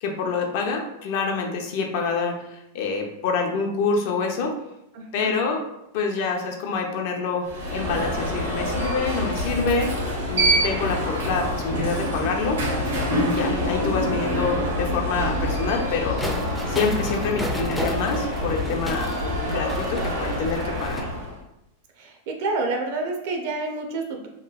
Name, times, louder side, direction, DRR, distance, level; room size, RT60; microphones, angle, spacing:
voice 1, 0.0-4.5 5.1-5.6 5.9-9.9 10.3-12.6 13.2-16.2 16.7-19.1 19.4-21.1, left 4 dB, 60° left, 2 dB, 0.5 m, -26 dB
voice 2, 4.9-5.4 22.0-24.3, right 3 dB, 60° right, 2 dB, 0.5 m, -28 dB
Alarm, 7.4-21.4, equal, 80° right, 0.9 m, -26 dB
sound 1, 16.2-21.0, equal, 5° left, 0.4 m, -34 dB
2.9 x 2.2 x 2.3 m, 0.86 s
hypercardioid pair, 100°, 0 cm